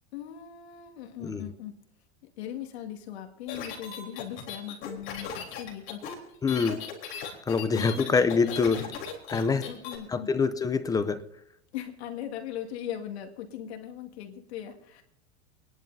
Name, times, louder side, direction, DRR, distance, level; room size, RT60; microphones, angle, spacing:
voice 1, 0.1-1.8 2.4-6.0 7.7-8.4 9.6-10.3 11.7-15.0, left 10 dB, 75° left, 3 dB, 2.1 m, -39 dB
sound 1, 3.5-10.0, left 7 dB, 35° left, 3.6 m, -38 dB
voice 2, 6.4-6.8 7.5-8.9 9.3-9.7 10.1-11.2, left 5 dB, 10° left, 12 dB, 0.5 m, -25 dB
28.0 x 11.0 x 2.7 m, 0.80 s
supercardioid pair, 140°, 32 cm